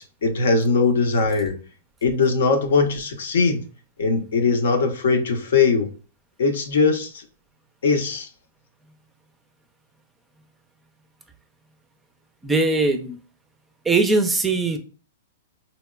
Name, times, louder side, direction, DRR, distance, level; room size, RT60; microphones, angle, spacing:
voice 1, 0.2-1.5 2.0-3.6 4.0-5.9 6.4-7.2 7.8-8.3, left 4 dB, 75° left, 0.7 m, -20 dB
voice 2, 12.4-13.2 13.9-14.8, right 3 dB, 10° right, 0.4 m, -20 dB
3.9 x 2.1 x 2.3 m
hypercardioid pair, 135°, 0 cm